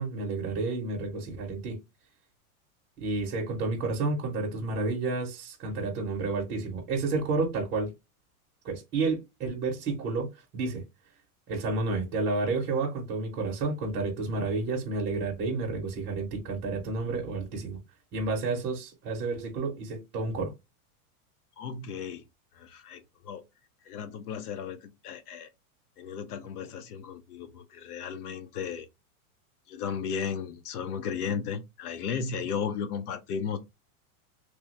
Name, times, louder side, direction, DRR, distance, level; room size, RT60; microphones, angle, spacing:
voice 1, 0.0-1.8 3.0-7.9 8.6-10.8 11.5-17.8 18.1-20.5, right 3 dB, 25° right, 0.8 m, -30 dB
voice 2, 21.6-22.2 22.5-23.4 23.8-25.5 26.0-28.9 29.7-33.6, left 6 dB, 80° left, 0.9 m, -35 dB
3.1 x 2.2 x 3.1 m
supercardioid pair, 170°, 45 cm